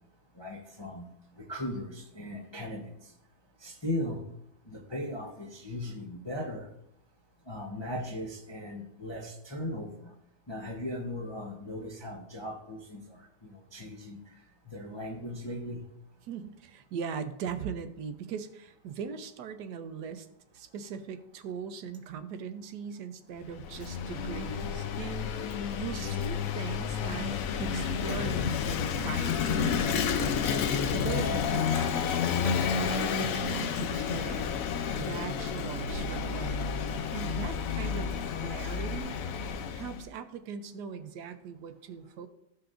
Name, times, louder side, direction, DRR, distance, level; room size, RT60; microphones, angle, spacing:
voice 1, 0.4-1.1 1.4-2.9 3.6-4.2 4.7-6.7 7.5-10.1 10.5-14.2 14.7-15.8, left 1 dB, 25° left, -1 dB, 0.5 m, -38 dB
voice 2, 16.2-20.3 20.5-25.4 25.8-27.3 27.6-30.4 30.9-34.5 34.9-36.7 37.1-39.2 39.7-42.3, right 7 dB, 75° right, 9 dB, 1.2 m, -40 dB
Vehicle / Engine, 23.4-40.1, left 6 dB, 65° left, 0.9 m, -30 dB
14.0 x 5.8 x 2.5 m, 0.80 s
omnidirectional pair, 1.9 m